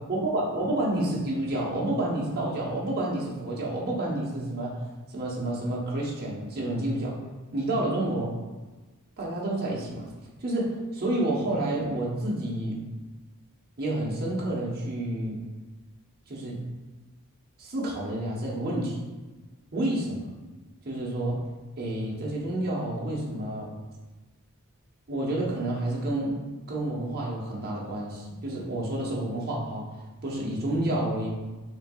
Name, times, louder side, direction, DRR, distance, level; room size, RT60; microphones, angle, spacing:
voice 1, 0.1-4.8 5.1-7.2 7.5-8.3 9.2-10.0 10.4-12.8 13.8-15.4 16.3-16.6 17.6-19.0 19.7-20.3 20.8-21.4 21.8-23.7 25.1-29.8 30.2-31.3, right 1 dB, 45° right, -4 dB, 1.0 m, -29 dB
6.5 x 2.7 x 2.4 m, 1.2 s
head